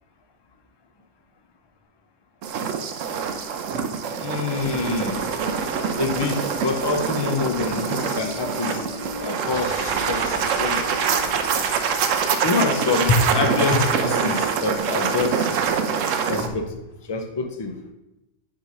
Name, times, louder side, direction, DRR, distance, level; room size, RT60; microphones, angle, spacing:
sound 1, 2.4-16.5, right 6 dB, 85° right, 1.0 m, -25 dB
voice 1, 4.2-5.2 6.0-8.8 9.2-10.8 12.4-15.6 16.3-16.7 17.0-17.8, left 4 dB, 30° left, 5 dB, 0.5 m, -25 dB
sound 2, 4.5-11.7, left 2 dB, 80° left, 1.2 m, -38 dB
7.4 x 3.4 x 5.2 m, 0.93 s
omnidirectional pair, 1.3 m